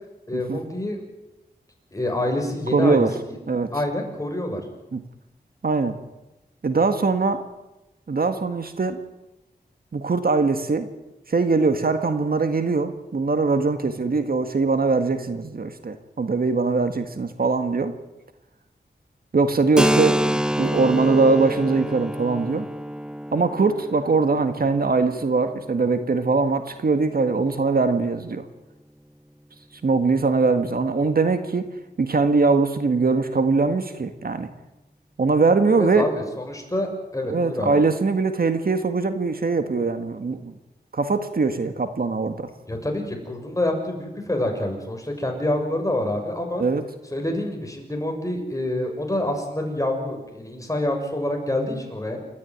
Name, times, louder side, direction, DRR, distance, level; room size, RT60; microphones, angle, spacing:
voice 1, 0.3-1.0 1.9-3.1 3.7-4.6 35.8-37.8 42.7-46.6 47.1-52.2, left 1 dB, 20° left, 2 dB, 6.6 m, -27 dB
voice 2, 2.7-3.1 3.5-3.7 4.9-5.0 5.6-6.0 6.6-7.4 8.1-9.0 9.9-10.9 11.3-17.9 19.3-22.7 23.3-28.5 29.8-31.7 32.0-34.5 35.2-36.0 37.3-40.5 40.9-42.5 46.6-46.8, right 4 dB, 60° right, 8 dB, 1.8 m, -22 dB
Keyboard (musical), 19.8-27.1, equal, 5° right, 0.8 m, -27 dB
29.0 x 14.0 x 9.4 m, 1.0 s
wide cardioid pair, 70°, 17 cm